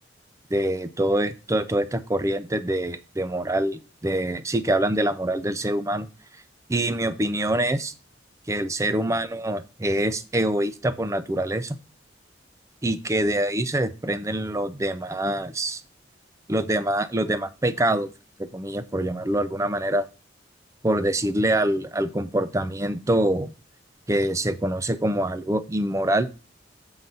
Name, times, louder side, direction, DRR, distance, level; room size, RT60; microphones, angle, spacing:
voice 1, 0.5-6.1 6.7-7.9 8.5-11.8 12.8-15.8 16.5-18.1 18.4-20.1 20.8-23.5 24.1-26.3, right 1 dB, 15° right, 13 dB, 0.5 m, -25 dB
7.5 x 3.9 x 5.4 m, 0.32 s
head